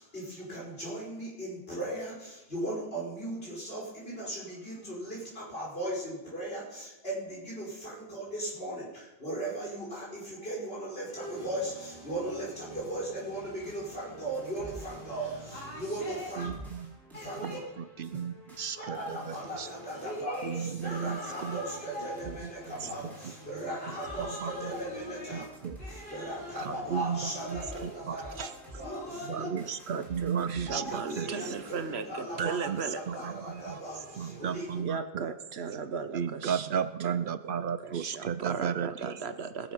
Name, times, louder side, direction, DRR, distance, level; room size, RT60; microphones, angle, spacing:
voice 1, 0.0-16.5 17.1-17.6 18.7-25.4 25.8-29.5 30.7-34.8, right 1 dB, 70° left, -5 dB, 5.5 m, -37 dB
sound 1, 13.4-31.9, equal, ahead, 3.9 m, -51 dB
voice 2, 16.4-16.9 17.4-17.6 18.0-19.7 20.4-21.6 22.3-22.4 24.4-24.5 25.3-25.8 26.6-27.6 28.1-28.2 29.3-31.3 32.4-32.8 33.1-33.8 34.2-35.2 36.1-39.1, right 8 dB, 60° right, 13 dB, 0.7 m, -34 dB
voice 3, 27.7-28.5 29.5-33.4 34.7-39.7, right 5 dB, 80° right, 10 dB, 1.2 m, -37 dB
19.5 x 7.0 x 5.5 m, 1.0 s
omnidirectional pair, 1.1 m